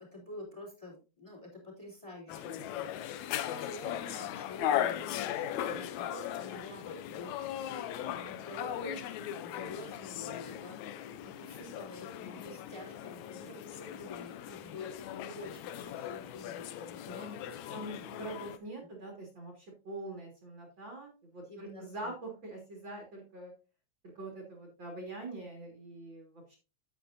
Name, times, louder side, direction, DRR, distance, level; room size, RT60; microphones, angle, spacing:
voice 1, 0.0-2.8 3.6-7.4 8.1-10.8 11.2-14.9 15.2-18.3 18.8-18.9 21.5-22.1, left 1 dB, 10° left, 0 dB, 3.2 m, -48 dB
sound 1, 2.3-18.6, left 11 dB, 80° left, 2.0 m, -38 dB
voice 2, 17.1-17.4 17.7-23.5 24.1-26.6, right 2 dB, 40° right, 0 dB, 2.8 m, -44 dB
10.5 x 8.2 x 2.7 m, 0.31 s
omnidirectional pair, 3.3 m